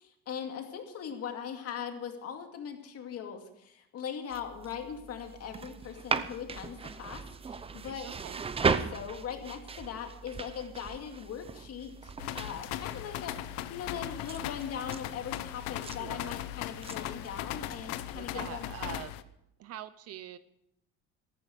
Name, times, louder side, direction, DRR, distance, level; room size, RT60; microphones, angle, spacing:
voice 1, 0.0-8.1 8.6-13.4 13.7-18.7, left 8 dB, 45° left, 4 dB, 2.3 m, -40 dB
sound 1, 4.3-18.1, right 5 dB, 15° right, 0.6 m, -38 dB
voice 2, 8.0-8.4 15.8-16.4 18.1-19.1 19.6-20.4, right 11 dB, 45° right, 14 dB, 0.8 m, -44 dB
sound 2, 12.2-19.2, left 13 dB, 80° left, 0.9 m, -38 dB
14.5 x 14.0 x 5.2 m, 0.78 s
cardioid pair, 135°, 33 cm